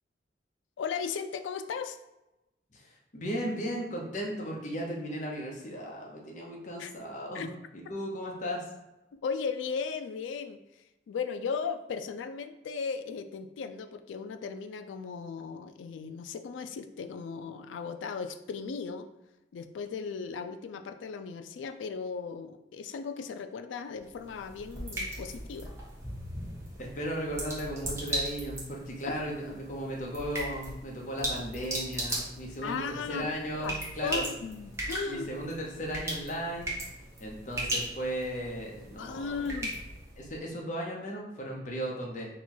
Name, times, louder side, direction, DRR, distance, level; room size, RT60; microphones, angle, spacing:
voice 1, 0.8-2.0 6.8-6.9 7.3-7.5 9.2-10.6 11.1-19.1 19.5-25.7 29.1-29.2 32.6-33.3 33.5-35.3 39.0-39.7, left 5 dB, 85° left, 8 dB, 0.3 m, -36 dB
voice 2, 2.7-7.5 7.7-8.6 26.8-34.3 35.1-36.7 37.2-39.5 40.2-42.3, equal, 40° left, -1 dB, 0.8 m, -36 dB
sound 1, 24.0-40.4, right 1 dB, 15° right, 1.0 m, -38 dB
4.2 x 2.3 x 4.3 m, 0.96 s
head